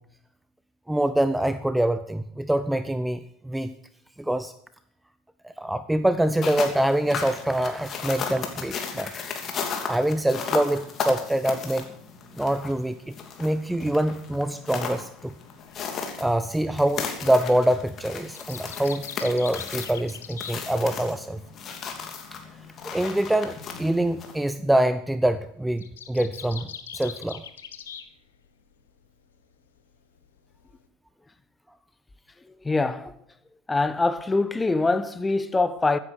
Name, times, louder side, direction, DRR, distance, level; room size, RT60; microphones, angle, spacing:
voice 1, 0.9-3.7 4.2-4.5 5.4-9.3 9.9-11.9 12.4-15.3 16.2-21.4 22.9-26.7 26.9-27.4, right 1 dB, 5° right, 0.7 m, -25 dB
sound 1, 6.2-24.5, left 6 dB, 40° left, 2.9 m, -35 dB
sound 2, 14.5-21.3 21.5-28.1 28.3-29.1 29.4-30.9, left 8 dB, 85° left, 1.2 m, -43 dB
voice 2, 32.6-33.1 33.7-36.0, left 3 dB, 15° left, 1.1 m, -24 dB
15.0 x 9.9 x 6.5 m
hypercardioid pair, 75°, 0 cm